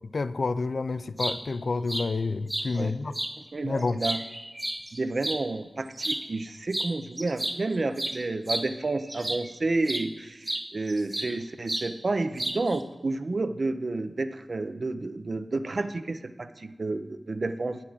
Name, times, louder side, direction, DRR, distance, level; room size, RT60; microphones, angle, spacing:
voice 1, 0.1-3.1 3.6-4.0, left 3 dB, 75° left, 14 dB, 0.3 m, -29 dB
sound 1, 1.0-1.4 1.9-2.1 2.5-2.7 3.1-3.3 3.8-5.4 5.9-6.2 6.7-6.9 7.2-9.5 9.9-10.1 10.5-11.4 11.7-11.9 12.4-12.8, right 1 dB, 25° right, 1.0 m, -31 dB
voice 2, 2.7-3.2 3.5-4.2 4.9-17.8, right 3 dB, 65° right, 10 dB, 0.5 m, -30 dB
8.5 x 5.9 x 6.2 m, 1.2 s
cardioid pair, 50°, 0 cm